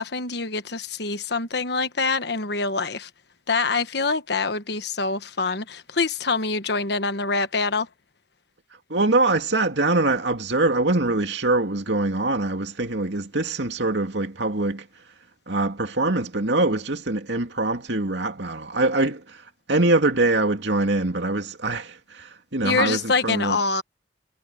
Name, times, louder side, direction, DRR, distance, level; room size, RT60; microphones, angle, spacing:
voice 1, 0.0-3.1 3.5-7.9 22.6-23.8, left 4 dB, 65° left, 1.3 m, -25 dB
voice 2, 8.9-14.9 15.5-23.6, right 2 dB, 70° right, 2.6 m, -23 dB
head